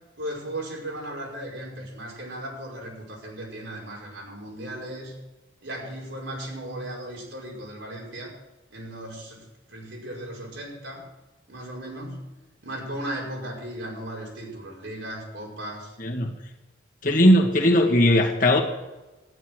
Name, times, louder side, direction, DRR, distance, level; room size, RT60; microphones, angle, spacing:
voice 1, 0.2-5.1 5.6-8.3 8.7-11.1 11.5-12.3 12.6-16.0, right 1 dB, 80° right, -3 dB, 5.5 m, -36 dB
voice 2, 16.0-16.3 17.0-18.6, left 1 dB, 45° left, 0 dB, 2.0 m, -18 dB
14.0 x 11.0 x 6.4 m, 1.1 s
head